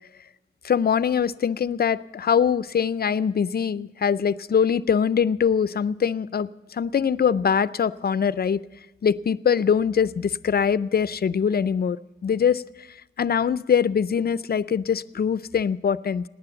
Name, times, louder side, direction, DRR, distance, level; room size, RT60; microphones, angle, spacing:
voice 1, 0.6-8.6 9.0-12.6 13.2-16.2, left 7 dB, 50° left, 16 dB, 0.5 m, -23 dB
18.0 x 9.9 x 6.9 m, 1.1 s
wide cardioid pair, 75°, 21 cm